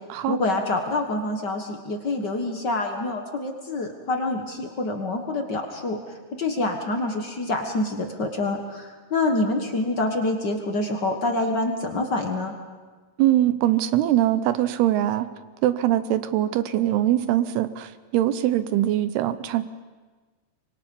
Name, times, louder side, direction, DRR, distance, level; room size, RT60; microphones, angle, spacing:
voice 1, 0.3-6.0 6.4-12.5, left 2 dB, 70° left, 3 dB, 1.0 m, -26 dB
voice 2, 13.2-15.3 15.6-19.6, right 13 dB, 85° right, 12 dB, 2.9 m, -22 dB
25.5 x 23.5 x 5.5 m, 1.4 s
omnidirectional pair, 4.6 m